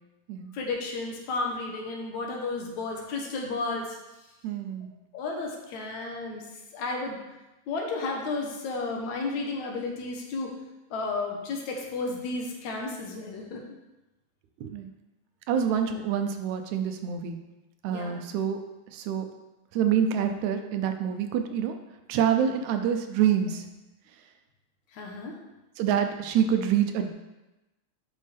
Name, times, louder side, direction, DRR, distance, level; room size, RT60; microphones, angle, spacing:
voice 1, 0.5-4.0 5.1-6.4 6.7-7.2 7.7-10.5 10.9-13.6 17.9-18.2 24.9-25.4, left 3 dB, 75° left, 0 dB, 2.4 m, -32 dB
voice 2, 4.4-4.9 14.6-14.9 15.5-17.4 17.8-18.6 18.9-19.3 19.7-21.8 22.1-23.6 25.8-27.1, right 8 dB, 80° right, 6 dB, 2.0 m, -26 dB
10.5 x 5.4 x 3.4 m, 1.0 s
omnidirectional pair, 3.4 m